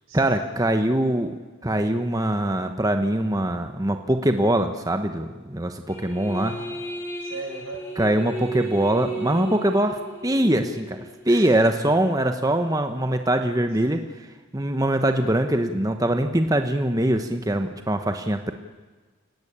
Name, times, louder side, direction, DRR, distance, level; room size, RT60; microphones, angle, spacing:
voice 1, 0.1-1.3 1.6-6.5 8.0-11.0 11.3-14.3 14.5-18.5, right 1 dB, 15° right, 6 dB, 1.1 m, -23 dB
sound 1, 5.9-11.7, right 1 dB, 10° left, 5.0 m, -35 dB
voice 2, 6.3-7.9 11.3-11.5, right 3 dB, 85° right, 1 dB, 7.7 m, -39 dB
29.0 x 18.0 x 8.8 m, 1.4 s
head